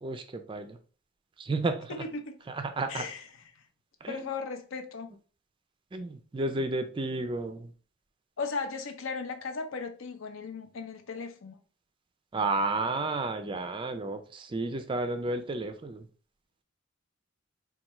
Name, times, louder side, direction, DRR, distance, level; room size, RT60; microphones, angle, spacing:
voice 1, 0.0-0.8 1.4-2.0 2.5-3.0 4.0-4.3 5.9-7.7 12.3-16.1, right 2 dB, 25° right, 0.3 m, -32 dB
voice 2, 1.9-2.4 2.9-3.3 4.1-5.1 8.4-11.6, left 4 dB, 70° left, 0.5 m, -36 dB
4.3 x 2.3 x 2.9 m
head